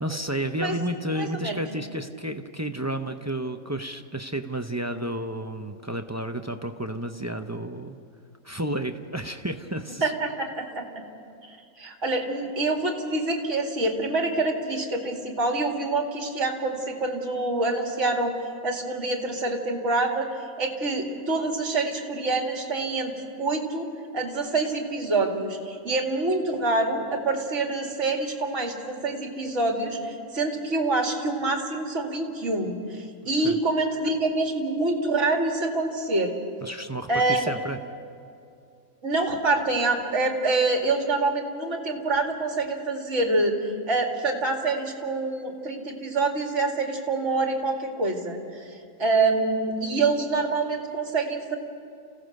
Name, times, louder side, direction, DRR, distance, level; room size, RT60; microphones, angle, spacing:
voice 1, 0.0-8.0 8.4-10.1 33.4-33.6 36.6-37.8, right 1 dB, 20° right, 6 dB, 0.5 m, -31 dB
voice 2, 1.1-1.6 10.0-11.0 11.8-18.4 18.6-20.3 20.6-23.1 23.4-23.9 24.1-36.3 37.1-37.5 39.0-48.7 49.0-51.6, right 3 dB, 60° right, 2 dB, 2.6 m, -26 dB
28.0 x 16.0 x 6.5 m, 2.5 s
omnidirectional pair, 1.4 m